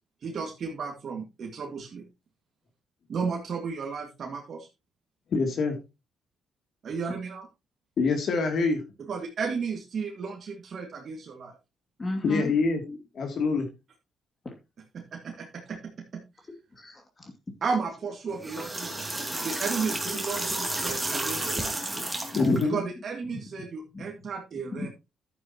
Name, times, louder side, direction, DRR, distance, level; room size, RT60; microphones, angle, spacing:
voice 1, 0.2-2.0 3.1-4.7 6.8-7.5 9.1-11.5 14.9-16.2 17.6-21.8 22.6-24.9, right 5 dB, 55° right, 1 dB, 2.0 m, -34 dB
voice 2, 5.3-5.8 8.0-8.8 12.2-12.8 13.1-13.7 22.4-22.8, left 4 dB, 60° left, 5 dB, 2.8 m, -25 dB
voice 3, 12.0-12.5 12.9-13.0 14.4-14.5 16.8-17.3 21.9-22.6 23.9-24.0 24.7-24.9, left 2 dB, 30° left, 2 dB, 2.6 m, -32 dB
sound 1, 18.3-22.6, right 2 dB, 10° right, 2.6 m, -32 dB
11.5 x 8.6 x 3.0 m, 0.25 s
cardioid pair, 90°, 0 cm